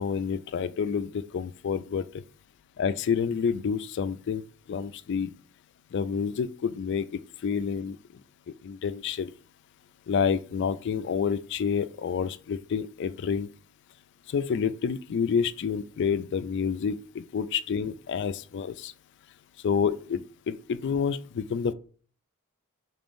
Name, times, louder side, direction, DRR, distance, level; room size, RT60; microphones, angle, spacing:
voice 1, 0.0-2.2 2.8-4.4 4.7-5.3 5.9-8.2 8.5-9.3 10.1-13.5 14.3-18.9 19.6-21.7, left 6 dB, 50° left, 0.3 m, -29 dB
5.8 x 3.6 x 2.6 m
head